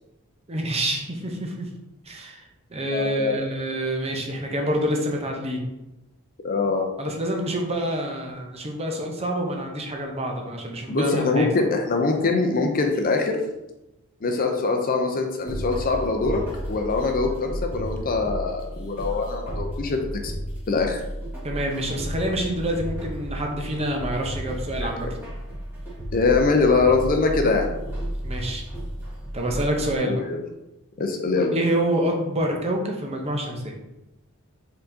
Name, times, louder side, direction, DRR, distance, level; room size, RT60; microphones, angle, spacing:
voice 1, 0.5-1.7 2.0-2.4 2.7-5.6 7.0-11.5 21.4-25.1 28.2-28.6 29.3-30.3 31.5-33.7, right 1 dB, 30° right, 2 dB, 0.6 m, -27 dB
voice 2, 2.9-3.4 6.4-6.9 10.9-13.4 14.2-16.4 16.7-20.0 20.2-20.3 20.7-21.0 24.8-25.1 26.1-27.7 30.0-30.4 31.0-31.5, left 3 dB, 40° left, 3 dB, 0.5 m, -23 dB
sound 1, 15.5-30.0, equal, 10° right, 1.5 m, -33 dB
4.6 x 3.7 x 2.7 m, 0.94 s
head